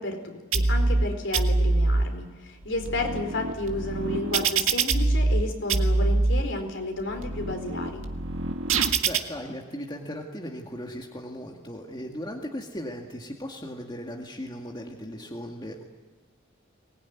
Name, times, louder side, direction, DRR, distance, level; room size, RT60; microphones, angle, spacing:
voice 1, 0.0-8.0, left 2 dB, 65° left, 4 dB, 4.4 m, -32 dB
sound 1, 0.5-1.0 1.3-2.0 2.6-5.4 5.7-6.4 7.0-9.2, right 3 dB, 75° right, 1.8 m, -24 dB
voice 2, 9.0-15.8, equal, 20° left, 0 dB, 2.1 m, -37 dB
23.5 x 20.0 x 9.7 m, 1.3 s
head